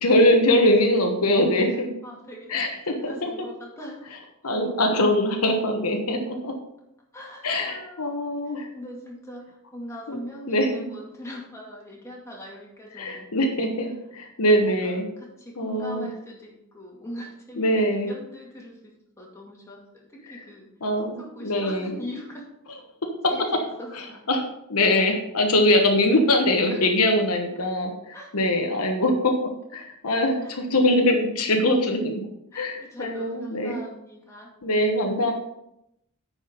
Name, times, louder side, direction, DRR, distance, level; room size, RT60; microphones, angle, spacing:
voice 1, 0.0-1.9 2.5-3.3 4.4-6.5 7.4-8.7 10.1-10.2 10.5-10.7 12.9-15.1 15.6-16.1 17.6-18.1 20.3-20.4 20.8-21.9 24.3-29.3 29.7-32.1 32.5-33.8 34.6-35.3, left 1 dB, 70° left, 3 dB, 1.1 m, -22 dB
voice 2, 2.0-4.1 7.1-8.3 8.7-13.5 14.5-20.7 21.0-22.5 23.3-24.3 25.0-25.1 26.7-26.8 28.1-28.3 30.1-30.5 32.5-34.5, equal, 15° left, -3 dB, 2.3 m, -41 dB
9.8 x 4.9 x 5.3 m, 0.82 s
head